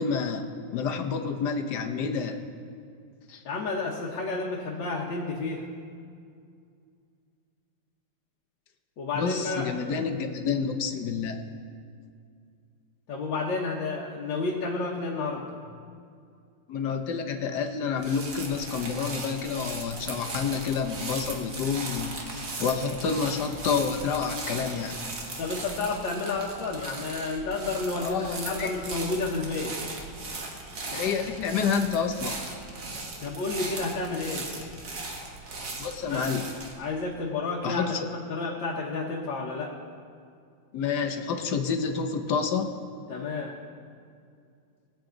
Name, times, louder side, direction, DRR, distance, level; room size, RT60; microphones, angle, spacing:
voice 1, 0.0-2.4 3.3-3.4 9.1-11.4 16.7-25.0 28.0-28.7 30.9-32.5 35.8-36.5 37.6-38.1 40.7-42.7, left 6 dB, 65° left, 5 dB, 1.5 m, -29 dB
voice 2, 3.5-5.6 9.0-9.7 13.1-15.6 25.4-29.8 33.2-34.5 36.1-36.3 36.8-37.9 38.3-39.7 43.1-43.5, left 3 dB, 80° left, -4 dB, 2.0 m, -31 dB
sound 1, 18.0-36.7, right 3 dB, 55° right, 2.0 m, -38 dB
21.0 x 8.2 x 3.9 m, 2.3 s
omnidirectional pair, 2.0 m